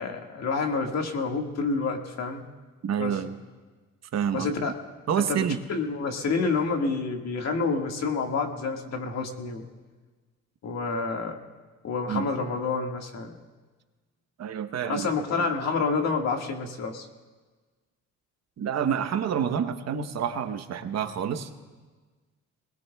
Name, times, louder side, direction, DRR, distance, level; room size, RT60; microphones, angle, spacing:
voice 1, 0.0-2.4 3.0-3.2 4.3-4.7 5.2-9.6 10.6-11.4 11.8-13.4 14.8-17.1, left 4 dB, 60° left, 3 dB, 1.8 m, -28 dB
voice 2, 2.8-3.4 4.1-4.5 5.1-5.6 12.1-12.2 14.4-15.1 18.6-21.5, right 8 dB, 60° right, 8 dB, 1.0 m, -28 dB
22.0 x 20.0 x 2.3 m, 1.3 s
cardioid pair, 90°, 30 cm